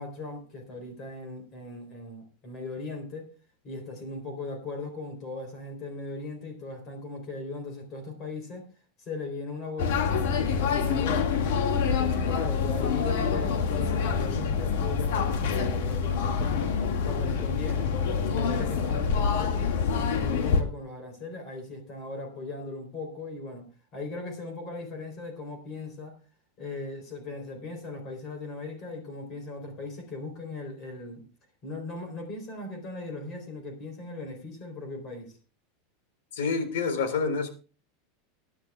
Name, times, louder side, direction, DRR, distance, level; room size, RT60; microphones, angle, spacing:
voice 1, 0.0-3.3 3.6-8.7 9.0-11.3 11.8-16.7 17.0-17.9 18.3-26.2 26.6-31.2 31.6-35.4, left 2 dB, 30° left, 3.6 m, -38 dB
sound 1, 9.8-20.6, left 6 dB, 65° left, 1.9 m, -26 dB
voice 2, 36.3-37.5, left 5 dB, 85° left, 3.8 m, -27 dB
22.0 x 10.0 x 2.3 m
supercardioid pair, 175°, 0 cm